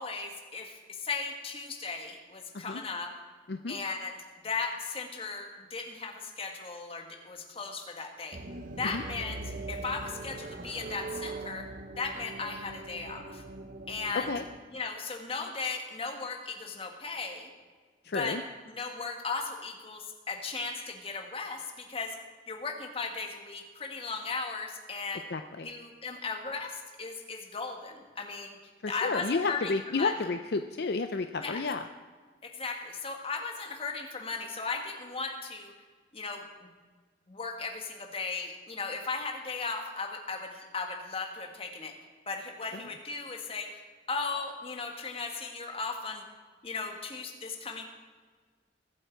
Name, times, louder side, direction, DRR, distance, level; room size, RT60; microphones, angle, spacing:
voice 1, 0.0-3.1 3.7-8.4 8.8-9.4 9.7-11.7 12.0-13.4 13.9-14.3 14.7-17.5 18.1-18.4 18.7-22.2 22.5-25.3 25.6-28.6 28.9-30.1 31.4-31.6 32.4-35.7 36.1-36.4 37.3-41.9 42.3-46.2 46.6-47.8, left 4 dB, 30° left, 3 dB, 1.8 m, -36 dB
sound 1, 8.3-14.6, right 2 dB, 45° right, 0.8 m, -41 dB
voice 2, 18.0-18.4 25.3-25.7 28.8-31.9 42.7-42.8, left 3 dB, 60° left, 8 dB, 0.6 m, -31 dB
22.5 x 8.2 x 4.7 m, 1.5 s
head